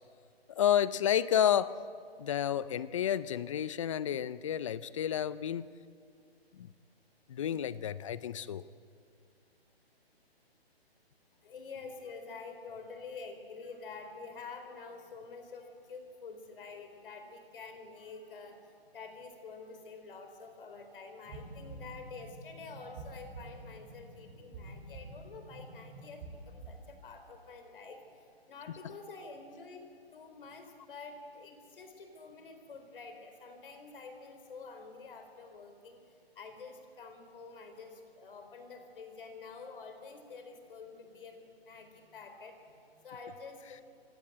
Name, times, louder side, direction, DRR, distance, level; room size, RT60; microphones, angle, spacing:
voice 1, 0.5-1.7 2.2-5.7 6.5-6.7 7.3-8.6, left 10 dB, 30° left, 17 dB, 0.6 m, -30 dB
voice 2, 11.4-36.0 36.4-43.8, left 4 dB, 60° left, 6 dB, 4.4 m, -48 dB
sound 1, 21.3-26.9, right 2 dB, 30° right, 7.8 m, -48 dB
26.5 x 17.0 x 8.1 m, 2.3 s
hypercardioid pair, 150°, 31 cm